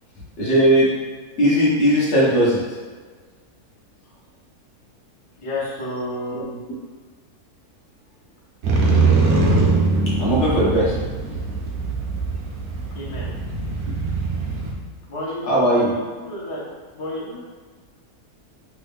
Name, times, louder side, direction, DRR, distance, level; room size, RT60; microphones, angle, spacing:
voice 1, 0.4-0.9 1.4-2.6 6.3-6.4 10.2-10.9 15.4-15.9, equal, 55° left, -7 dB, 1.0 m, -17 dB
voice 2, 5.4-6.6 12.9-13.3 15.1-16.6 16.9-17.4, left 1 dB, 30° left, -8 dB, 0.6 m, -31 dB
Motorcycle, 8.6-14.7, right 3 dB, 70° right, 1.0 m, -21 dB
3.3 x 2.3 x 3.4 m, 1.4 s
omnidirectional pair, 1.6 m